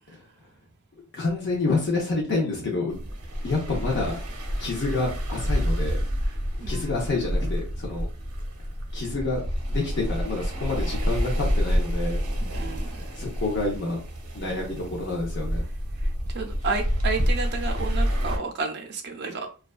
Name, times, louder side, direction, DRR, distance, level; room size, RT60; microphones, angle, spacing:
voice 1, 1.1-3.0 3.4-4.2 4.6-6.0 6.5-8.1 8.9-9.4 9.7-12.2 12.5-12.9 13.1-14.0 14.3-15.6, left 3 dB, 55° left, -2 dB, 0.6 m, -28 dB
sound 1, 2.9-18.4, equal, 85° right, 0.8 m, -28 dB
voice 2, 6.3-7.0 12.5-13.0 16.0-19.5, right 4 dB, 50° right, 3 dB, 0.5 m, -32 dB
2.4 x 2.2 x 2.3 m, 0.35 s
head